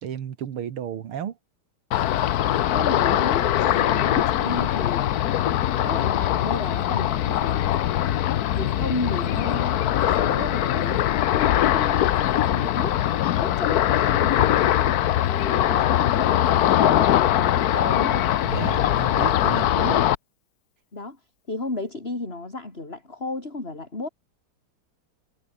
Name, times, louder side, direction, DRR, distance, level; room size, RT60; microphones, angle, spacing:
voice 1, 0.0-1.4 18.5-20.0, right 9 dB, 90° right, 2.5 m, -33 dB
Ocean, 1.9-20.2, left 12 dB, 65° left, 1.0 m, -22 dB
voice 2, 2.7-5.1 5.8-7.8 8.6-13.0 13.4-18.3 19.8-20.0 20.9-21.2 21.5-24.1, left 2 dB, 25° left, 4.5 m, -33 dB
omnidirectional pair, 2.3 m